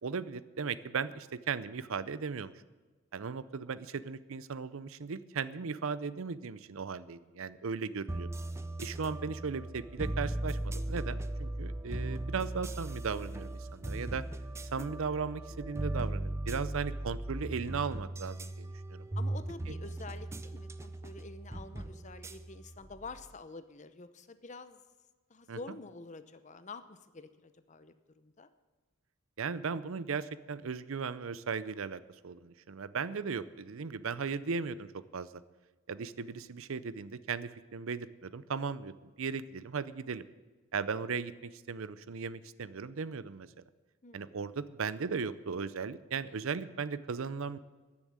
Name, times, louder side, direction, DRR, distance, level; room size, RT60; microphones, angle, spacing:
voice 1, 0.0-2.5 3.1-8.3 8.8-14.2 14.7-19.1 19.7-19.8 25.5-25.8 29.4-35.4 35.9-40.2 40.7-43.5 44.1-47.6, right 5 dB, 70° right, 16 dB, 0.5 m, -37 dB
sound 1, 8.1-23.3, right 1 dB, 10° right, 0.5 m, -38 dB
voice 2, 19.2-24.8 25.3-28.5 44.0-44.3, left 3 dB, 35° left, 12 dB, 0.7 m, -48 dB
13.5 x 7.2 x 9.4 m, 1.3 s
head